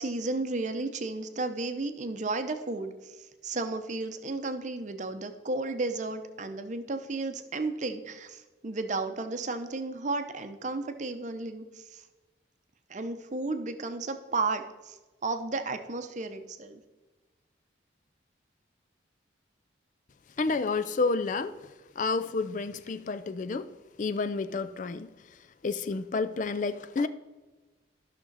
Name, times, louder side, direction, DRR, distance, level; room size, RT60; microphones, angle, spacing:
voice 1, 0.0-12.1 12.9-16.8, right 3 dB, 40° right, 0.7 m, -33 dB
voice 2, 20.4-21.5 22.0-23.7 24.0-25.1 25.6-27.1, left 4 dB, 40° left, 0.4 m, -30 dB
12.5 x 6.1 x 4.0 m
head